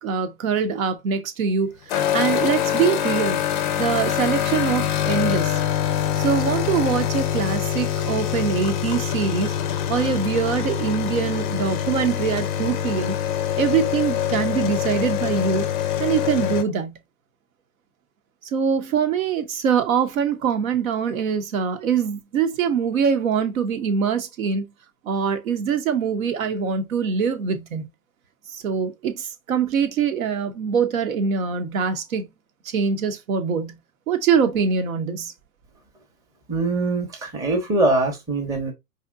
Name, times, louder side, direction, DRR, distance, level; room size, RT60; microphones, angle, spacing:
voice 1, 0.0-1.7 2.1-3.4 3.8-5.6 6.2-9.5 9.9-13.1 13.6-15.7 16.0-17.0 18.4-24.7 25.0-27.9 28.5-32.3 32.6-33.8 34.1-35.3, right 6 dB, 60° right, 0.9 m, -23 dB
sound 1, 1.9-16.6, left 10 dB, 30° left, 0.5 m, -24 dB
voice 2, 36.5-38.7, right 2 dB, 10° right, 0.8 m, -22 dB
4.9 x 2.7 x 2.4 m
hypercardioid pair, 120°, 46 cm